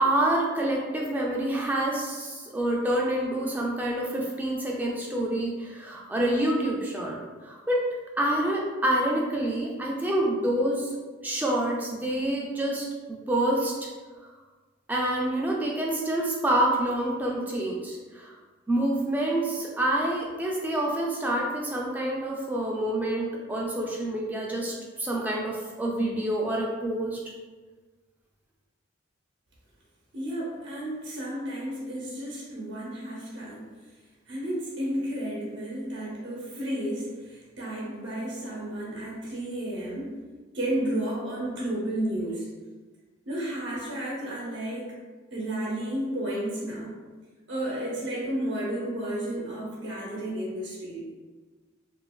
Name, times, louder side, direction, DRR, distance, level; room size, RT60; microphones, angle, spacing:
voice 1, 0.0-7.9 8.2-10.9 11.2-13.9 14.9-18.3 18.7-27.2, right 1 dB, 10° right, -2 dB, 0.3 m, -27 dB
voice 2, 30.1-33.7 34.3-40.1 40.5-42.5 43.3-44.9 45.3-47.0 47.5-51.0, right 1 dB, 60° right, -5 dB, 0.6 m, -32 dB
2.8 x 2.3 x 2.2 m, 1.3 s
head